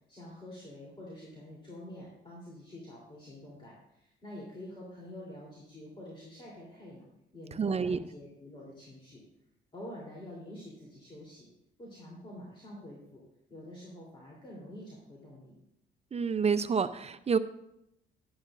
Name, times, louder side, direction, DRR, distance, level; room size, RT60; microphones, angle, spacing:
voice 1, 0.1-7.0 7.3-9.2 9.7-11.5 11.8-13.2 13.5-15.5, left 1 dB, 25° left, -4 dB, 3.3 m, -47 dB
voice 2, 7.6-8.0 16.1-17.4, right 6 dB, 30° right, 12 dB, 0.5 m, -28 dB
12.0 x 11.5 x 2.5 m, 0.82 s
cardioid pair, 90°, 20 cm